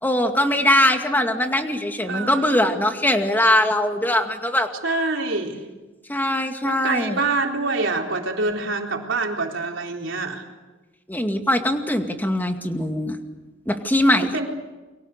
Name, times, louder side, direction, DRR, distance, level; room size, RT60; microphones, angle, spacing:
voice 1, 0.0-4.7 6.1-7.2 11.1-13.2 13.7-14.4, left 1 dB, 10° left, 5 dB, 2.2 m, -21 dB
voice 2, 2.1-2.7 4.8-5.6 6.6-10.4 14.3-14.5, right 3 dB, 80° right, 1 dB, 3.8 m, -26 dB
30.0 x 23.5 x 6.7 m, 1.2 s
head